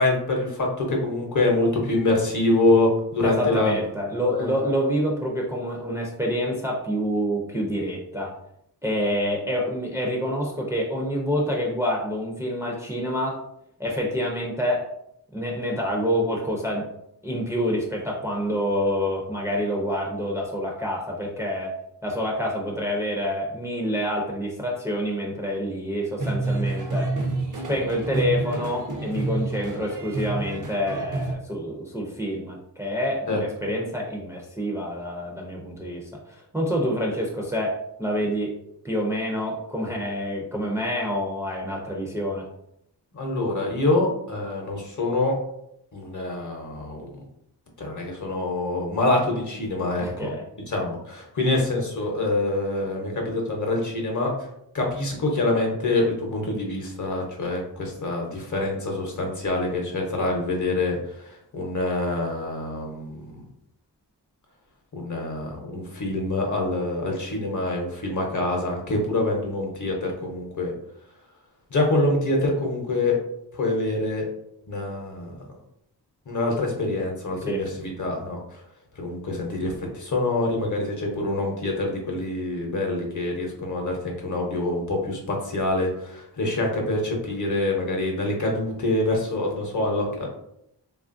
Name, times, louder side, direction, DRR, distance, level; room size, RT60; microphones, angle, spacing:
voice 1, 0.0-3.7 4.2-4.5 33.3-33.4 43.1-45.4 45.9-47.0 47.8-50.3 50.7-54.5 54.7-63.3 64.9-70.7 71.7-73.2 73.5-74.3 74.7-75.3 76.3-78.6 79.0-90.3, left 2 dB, 45° left, 0 dB, 0.8 m, -25 dB
voice 2, 3.2-8.3 8.8-13.4 13.8-14.9 15.3-16.9 17.2-21.7 22.0-27.1 27.7-38.5 38.8-42.5 50.0-50.4 77.5-77.6, equal, 5° right, -2 dB, 0.5 m, -27 dB
sound 1, 26.2-31.3, right 2 dB, 50° right, 0.6 m, -28 dB
3.0 x 2.4 x 2.5 m, 0.77 s
wide cardioid pair, 90°, 40 cm